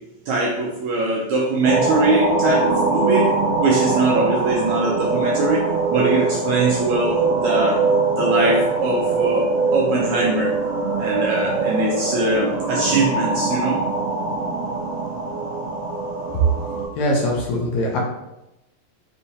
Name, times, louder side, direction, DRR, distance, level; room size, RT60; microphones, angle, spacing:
voice 1, 0.3-5.6 5.9-7.8 8.2-10.5 11.0-13.8, right 2 dB, 80° right, -3 dB, 1.7 m, -22 dB
sound 1, 1.6-16.8, right 3 dB, 65° right, 2.3 m, -22 dB
voice 2, 17.0-18.0, left 1 dB, 75° left, -2 dB, 1.8 m, -22 dB
5.5 x 3.2 x 2.7 m, 0.92 s
omnidirectional pair, 3.9 m